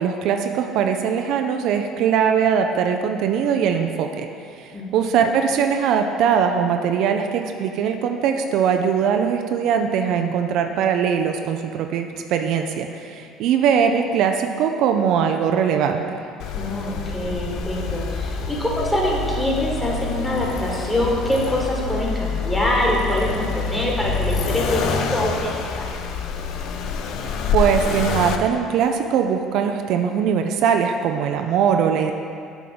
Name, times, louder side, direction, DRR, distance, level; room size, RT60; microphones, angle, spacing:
voice 1, 0.0-4.3 4.6-16.2 27.5-32.1, right 7 dB, 65° right, 5 dB, 0.4 m, -21 dB
Accelerating revving vroom, 16.4-28.4, left 5 dB, 65° left, 0.5 m, -27 dB
voice 2, 16.5-25.9, left 1 dB, 10° left, -3 dB, 1.8 m, -24 dB
7.8 x 3.5 x 5.9 m, 2.3 s
hypercardioid pair, 70°, 0 cm